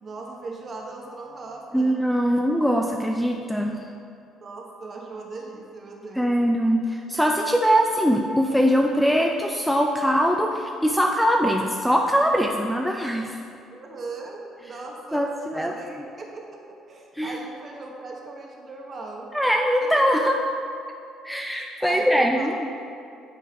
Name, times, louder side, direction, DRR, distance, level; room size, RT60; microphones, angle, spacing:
voice 1, 0.0-2.0 4.4-6.3 13.7-15.3 15.5-16.6 16.9-19.3 19.8-19.9 21.8-22.7, right 3 dB, 35° right, 0 dB, 1.1 m, -38 dB
voice 2, 1.7-3.8 6.2-13.4 15.1-15.3 15.5-15.7 17.2-17.4 19.3-20.4 21.2-22.7, equal, ahead, 2 dB, 0.4 m, -22 dB
10.0 x 3.8 x 4.4 m, 2.4 s
cardioid pair, 120°, 0 cm